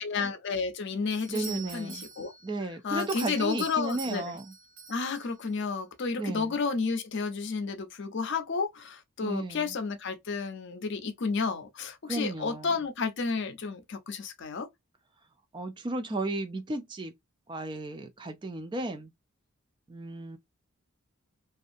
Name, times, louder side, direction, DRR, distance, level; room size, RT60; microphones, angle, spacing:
voice 1, 0.0-2.3 2.8-4.4 4.9-14.7, left 4 dB, 55° left, 0.5 m, -31 dB
Doorbell, 1.1-5.6, right 6 dB, 65° right, 1.5 m, -45 dB
voice 2, 1.3-2.0 2.4-4.5 6.2-6.6 9.2-9.7 12.0-12.7 15.5-17.1 17.5-19.1 19.9-20.4, right 2 dB, 20° right, 0.3 m, -34 dB
2.6 x 2.3 x 2.4 m
head